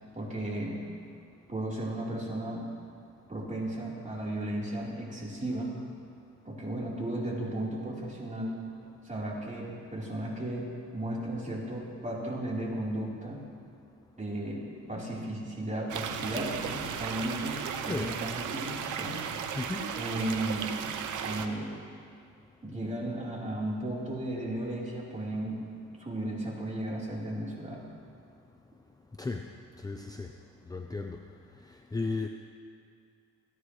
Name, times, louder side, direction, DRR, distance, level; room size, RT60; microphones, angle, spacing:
voice 1, 0.1-0.8 1.5-2.7 3.3-5.7 6.5-8.6 9.0-13.4 14.2-19.2 20.0-20.7 21.2-21.7 22.6-25.6 26.0-27.9, right 1 dB, 25° right, -5 dB, 3.9 m, -35 dB
sound 1, 15.9-21.5, right 7 dB, 85° right, 0.9 m, -35 dB
voice 2, 17.8-18.2 19.6-19.9 29.2-29.4 29.8-30.3 30.7-31.2 31.9-32.3, left 3 dB, 10° left, 3 dB, 0.7 m, -34 dB
28.5 x 10.0 x 3.2 m, 2.3 s
cardioid pair, 90°, 30 cm